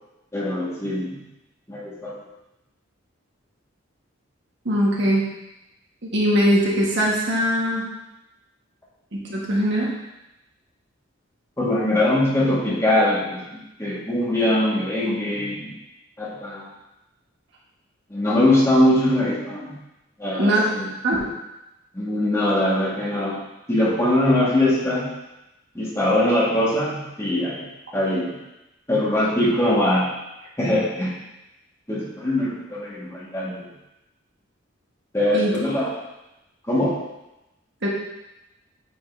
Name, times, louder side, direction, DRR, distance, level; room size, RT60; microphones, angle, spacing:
voice 1, 0.3-1.2 1.7-2.2 11.6-15.7 16.2-16.7 18.1-19.7 20.2-20.9 21.9-23.4 23.7-25.1 25.7-27.7 27.9-28.3 28.9-30.1 30.6-31.1 31.9-33.7 35.1-35.9 36.7-37.0, left 1 dB, 15° left, -7 dB, 1.8 m, -22 dB
voice 2, 4.6-5.2 6.0-7.8 9.1-9.9 20.3-20.6 21.0-21.2 35.3-35.5 37.8-37.9, equal, 60° right, -4 dB, 1.5 m, -21 dB
8.7 x 5.3 x 2.7 m, 0.93 s
head